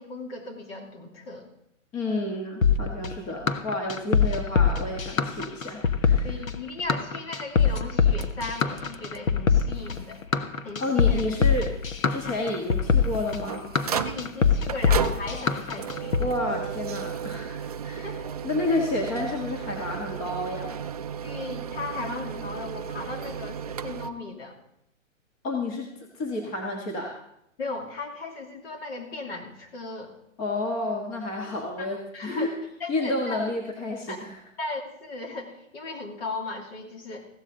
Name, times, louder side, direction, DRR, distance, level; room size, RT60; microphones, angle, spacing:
voice 1, 0.0-1.5 6.2-10.3 10.6-11.2 14.0-16.2 18.0-18.3 18.7-18.8 21.2-24.6 27.6-30.1 31.8-31.9 32.1-32.5 32.8-33.4 34.1-34.3 34.6-37.3, left 3 dB, 50° left, 1 dB, 2.8 m, -37 dB
voice 2, 1.9-6.3 10.8-11.7 12.1-13.6 16.2-18.1 18.4-20.8 25.4-25.9 26.1-27.1 30.4-32.5 32.9-34.3, left 2 dB, 20° left, 0 dB, 1.5 m, -30 dB
sound 1, 2.6-16.3, left 6 dB, 85° left, 1.3 m, -23 dB
sound 2, 8.2-9.2 9.6-9.7 9.9-10.0 10.7-10.8 12.8-24.1, right 7 dB, 30° right, 0.4 m, -34 dB
15.5 x 12.5 x 3.9 m, 0.78 s
hypercardioid pair, 150°, 39 cm